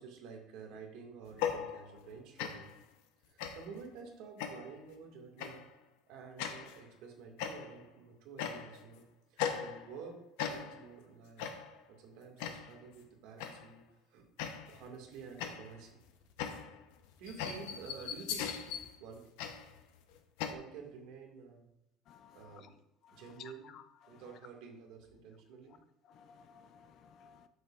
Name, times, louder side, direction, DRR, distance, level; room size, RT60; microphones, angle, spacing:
voice 1, 0.0-2.7 3.2-5.7 6.1-9.0 9.3-10.2 10.5-11.5 11.9-13.8 14.1-14.2 14.7-16.0 17.2-19.2 20.5-21.7 22.3-22.7 23.1-23.7 24.1-25.7, right 5 dB, 60° right, 2.0 m, -50 dB
sound 1, 1.3-2.1 2.4-2.8 3.4-3.8 4.4-4.8 5.4-5.7 6.4-6.8 7.4-7.9 8.4-8.9 9.4-10.1 10.4-10.9 11.4-11.8 12.4-12.8 13.4-13.8 14.4-14.9 15.4-20.5, left 8 dB, 85° left, 0.9 m, -39 dB
voice 2, 22.1-22.6 23.1-24.2 26.2-27.5, left 8 dB, 40° left, 0.5 m, -56 dB
12.0 x 6.7 x 2.5 m
cardioid pair, 180°, 0 cm